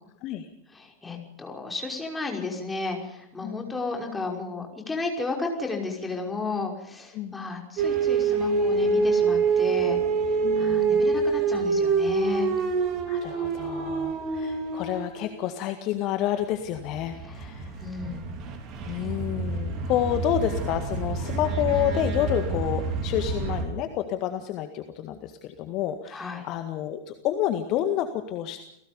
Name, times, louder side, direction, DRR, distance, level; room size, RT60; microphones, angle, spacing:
voice 1, 0.7-10.0 10.6-12.5 17.2-17.5 17.8-18.3 19.0-19.1 26.1-26.5, left 3 dB, 10° left, 1 dB, 5.7 m, -33 dB
sound 1, 7.8-15.5 16.7-23.7, right 4 dB, 35° right, 3.6 m, -26 dB
voice 2, 10.4-11.1 13.1-17.7 18.9-28.6, left 11 dB, 40° left, 7 dB, 1.8 m, -29 dB
29.5 x 18.0 x 5.3 m, 0.79 s
figure-of-eight pair, 90°, 0 cm